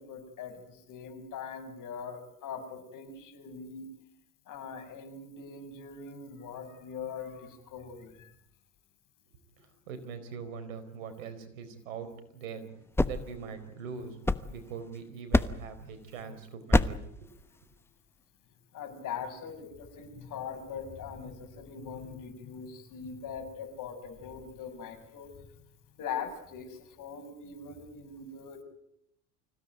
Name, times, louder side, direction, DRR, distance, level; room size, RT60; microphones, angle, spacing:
voice 1, 0.0-3.9 4.5-8.3 15.8-16.4 18.7-25.3 26.0-28.6, left 6 dB, 55° left, 7 dB, 6.4 m, -42 dB
voice 2, 9.9-12.7 13.0-14.2 14.5-17.0 17.3-17.4, right 6 dB, 85° right, 10 dB, 4.5 m, -42 dB
sound 1, 12.7-14.9 15.3-15.8 16.7-17.2, left 2 dB, 5° left, 1.1 m, -28 dB
26.0 x 17.0 x 9.3 m, 0.75 s
hypercardioid pair, 80°, 39 cm